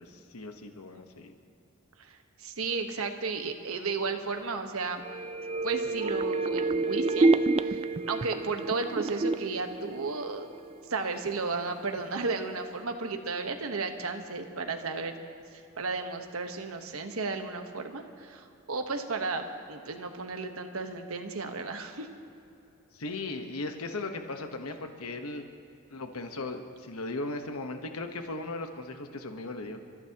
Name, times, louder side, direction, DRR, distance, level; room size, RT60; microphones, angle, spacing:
voice 1, 0.0-1.3 22.9-25.4 25.9-29.9, left 2 dB, 85° left, 5 dB, 1.2 m, -37 dB
voice 2, 2.0-5.0 5.6-10.5 10.9-15.2 15.8-22.1, right 4 dB, 75° right, 5 dB, 1.2 m, -34 dB
sound 1, 5.0-10.7 11.1-11.2, right 3 dB, 25° right, 0.3 m, -28 dB
30.0 x 14.5 x 2.9 m, 2.7 s
head